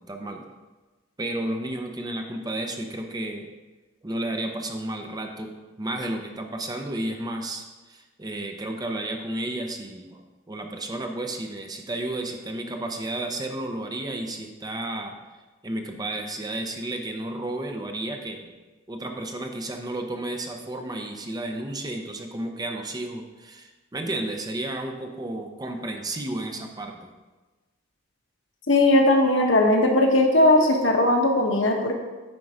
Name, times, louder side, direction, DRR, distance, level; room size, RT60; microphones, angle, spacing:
voice 1, 0.1-0.4 1.2-3.5 4.0-5.5 5.8-15.2 15.6-18.5 18.9-27.1, right 1 dB, 20° right, 3 dB, 0.7 m, -32 dB
voice 2, 28.7-31.9, left 1 dB, 75° left, 2 dB, 1.2 m, -19 dB
9.5 x 4.6 x 5.0 m, 1.2 s
head